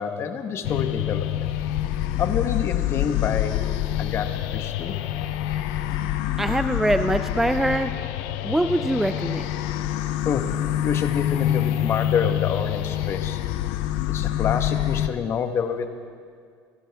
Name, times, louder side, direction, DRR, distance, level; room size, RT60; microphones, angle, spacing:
voice 1, 0.0-1.5 2.2-3.7 4.0-5.0 10.2-10.5 10.8-13.4 14.1-15.9, left 7 dB, 45° left, 7 dB, 1.1 m, -28 dB
sound 1, 0.6-15.1, left 12 dB, 85° left, 0.6 m, -26 dB
voice 2, 6.4-7.9 8.4-9.5, right 1 dB, 5° right, 9 dB, 0.4 m, -23 dB
27.5 x 10.5 x 3.5 m, 2.1 s
cardioid pair, 120°, 6 cm